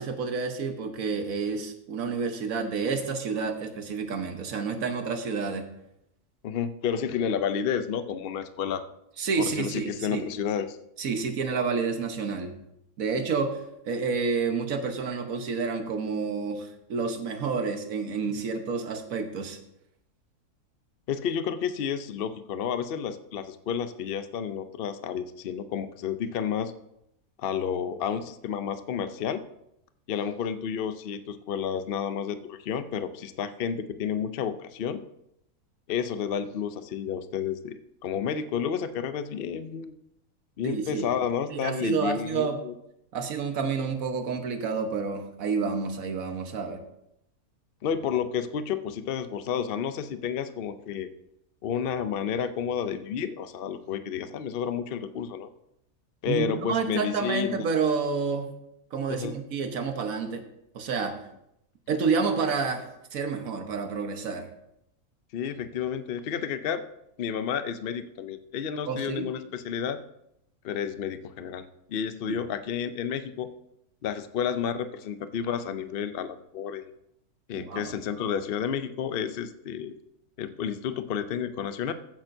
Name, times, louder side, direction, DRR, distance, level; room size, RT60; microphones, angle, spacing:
voice 1, 0.0-5.7 9.2-10.2 11.0-12.6 13.0-19.6 40.6-41.2 41.5-42.6 43.1-46.8 56.3-58.6 58.9-60.4 60.7-61.2 61.9-64.5 68.8-69.3 72.3-72.4 77.5-77.9, right 5 dB, 65° right, 6 dB, 1.5 m, -29 dB
voice 2, 6.4-8.8 9.4-10.8 21.1-26.7 27.4-29.4 30.1-35.0 35.9-39.9 40.6-42.7 47.8-51.1 51.6-55.5 56.2-57.6 59.1-59.3 65.3-66.8 67.2-70.0 70.6-73.5 74.0-76.9 77.5-79.9 80.4-81.9, left 8 dB, 65° left, 11 dB, 0.5 m, -31 dB
15.5 x 8.8 x 2.7 m, 0.80 s
omnidirectional pair, 1.6 m